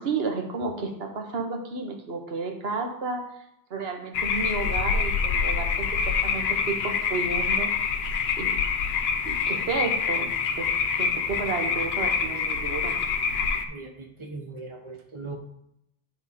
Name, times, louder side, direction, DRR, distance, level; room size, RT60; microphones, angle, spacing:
voice 1, 0.0-3.3 3.7-7.7 8.4-8.6 9.2-10.7 11.0-13.0, right 4 dB, 70° right, 3 dB, 1.3 m, -32 dB
sound 1, 4.1-13.7, left 6 dB, 75° left, 0.9 m, -26 dB
voice 2, 13.7-15.4, right 3 dB, 30° right, 2 dB, 1.1 m, -39 dB
9.7 x 3.5 x 4.2 m, 0.79 s
omnidirectional pair, 1.1 m